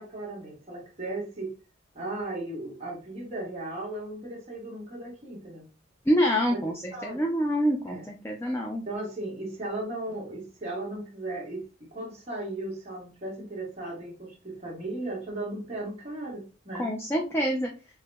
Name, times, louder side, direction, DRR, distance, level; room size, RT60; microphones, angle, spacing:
voice 1, 0.0-1.5 1.9-5.7 6.5-6.6 6.9-7.2 7.9-8.1 8.9-16.9, right 2 dB, 30° right, 1.2 m, -36 dB
voice 2, 6.1-8.8 16.8-17.7, equal, 10° left, 0.3 m, -26 dB
4.6 x 2.1 x 2.2 m
head